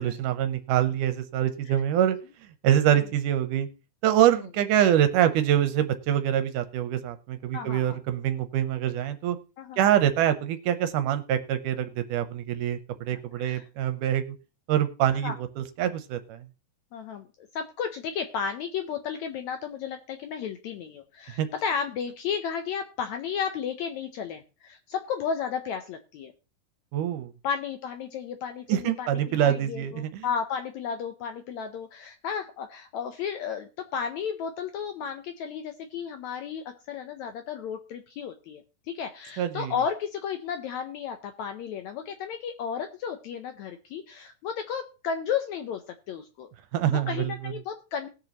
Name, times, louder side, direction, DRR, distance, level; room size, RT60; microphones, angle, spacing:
voice 1, 0.0-2.2 2.6-3.7 4.0-9.4 9.8-14.4 14.7-16.4 21.4-21.5 26.9-27.3 28.7-30.3 39.4-39.7 46.7-47.5, right 11 dB, 75° right, 10 dB, 2.1 m, -25 dB
voice 2, 7.5-8.0 9.6-9.9 13.1-13.7 15.2-15.4 16.9-17.3 17.5-26.3 27.4-46.5 46.8-48.1, left 7 dB, 75° left, 7 dB, 1.7 m, -33 dB
19.5 x 6.6 x 2.9 m, 0.32 s
omnidirectional pair, 4.0 m